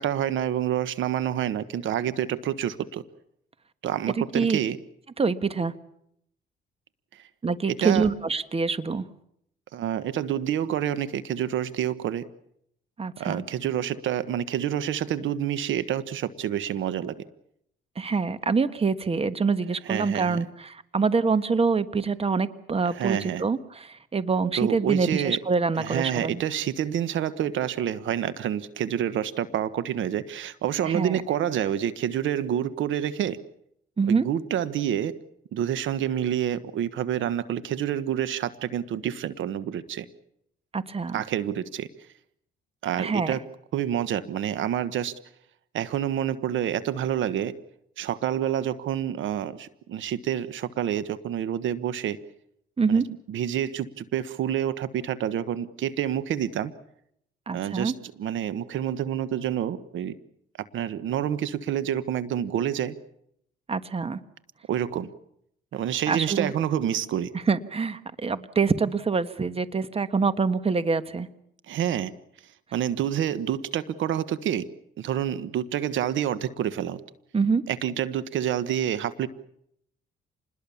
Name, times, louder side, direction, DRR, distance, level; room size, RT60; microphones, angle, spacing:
voice 1, 0.0-3.0 3.8-4.8 7.1-7.2 7.7-8.1 9.7-12.2 13.2-17.1 19.8-20.4 22.9-23.4 24.5-25.4 25.8-33.4 34.1-35.1 35.5-40.1 41.1-41.9 42.8-43.4 43.7-45.1 45.7-47.5 48.0-52.2 52.9-53.0 53.3-56.7 57.5-57.9 58.2-60.1 60.7-62.9 64.7-65.1 65.7-67.3 71.7-72.1 72.7-74.7 75.0-77.0 77.7-79.3, right 10 dB, 75° right, 14 dB, 1.3 m, -28 dB
voice 2, 4.2-4.6 5.2-5.7 7.4-9.0 13.0-13.4 18.0-26.4 30.8-31.2 34.0-34.3 40.7-41.2 43.0-43.4 52.8-53.0 57.5-57.9 63.7-64.2 66.1-66.5 67.5-71.3 77.3-77.6, right 4 dB, 30° right, 12 dB, 1.5 m, -25 dB
28.0 x 21.0 x 7.1 m, 0.73 s
cardioid pair, 90°, 20 cm